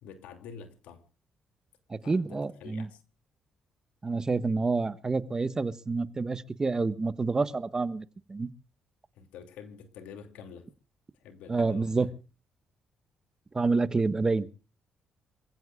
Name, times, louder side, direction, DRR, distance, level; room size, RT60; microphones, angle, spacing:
voice 1, 0.0-1.0 2.0-3.0 9.2-10.7 11.2-12.1, left 6 dB, 85° left, 2.8 m, -47 dB
voice 2, 1.9-2.9 4.0-8.5 11.5-12.1 13.5-14.5, right 3 dB, 30° right, 1.3 m, -28 dB
27.0 x 16.0 x 2.4 m
supercardioid pair, 70°, 2 cm